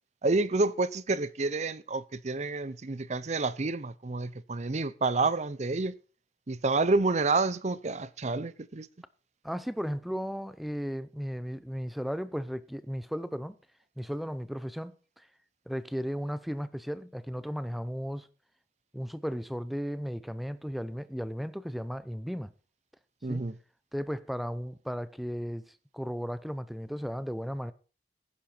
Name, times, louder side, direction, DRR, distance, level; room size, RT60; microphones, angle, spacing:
voice 1, 0.2-5.9 6.5-8.9 23.2-23.6, right 3 dB, 40° right, 0.6 m, -29 dB
voice 2, 9.4-13.6 14.0-15.3 15.7-18.3 18.9-22.5 23.3-23.4 23.9-27.7, equal, ahead, 0.6 m, -35 dB
15.0 x 10.5 x 4.5 m
head